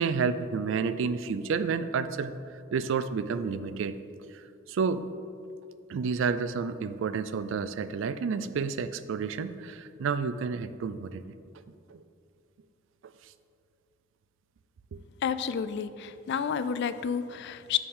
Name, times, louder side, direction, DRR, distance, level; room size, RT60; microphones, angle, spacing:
voice 1, 0.0-2.3 2.7-4.0 4.7-5.1 5.9-11.2 11.9-12.0 14.9-15.0, right 5 dB, 70° right, 13 dB, 0.4 m, -30 dB
voice 2, 15.2-17.8, left 7 dB, 60° left, 13 dB, 0.3 m, -30 dB
7.2 x 6.8 x 3.7 m, 2.4 s
head